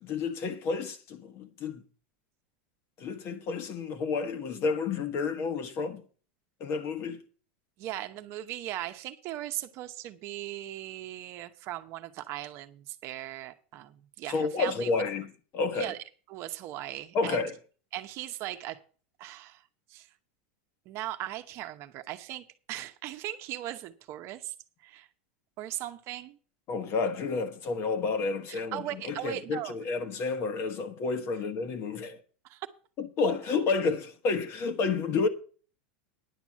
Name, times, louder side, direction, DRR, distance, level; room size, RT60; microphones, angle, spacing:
voice 1, 0.0-1.8 3.0-6.0 6.6-7.2 14.3-15.9 17.1-17.5 26.7-32.2 33.0-35.3, left 4 dB, 40° left, 1.4 m, -30 dB
voice 2, 7.8-14.9 15.7-16.0 16.3-17.5 17.9-18.8 19.2-19.6 19.9-20.1 20.9-24.5 24.8-25.1 25.6-26.4 28.5-29.8 32.4-32.7, right 14 dB, 45° right, 0.9 m, -38 dB
10.0 x 6.1 x 7.3 m
supercardioid pair, 130°, 6 cm